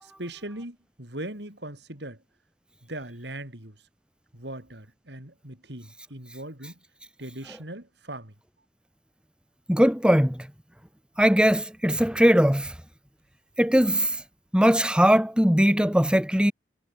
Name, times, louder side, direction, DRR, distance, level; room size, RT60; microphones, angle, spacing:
voice 1, 0.0-2.2 2.8-3.8 4.3-6.8 7.2-8.3, right 1 dB, 65° right, 6.1 m, -39 dB
voice 2, 9.7-10.4 11.2-12.7 13.6-14.1 14.5-16.5, equal, 5° right, 2.3 m, -20 dB
head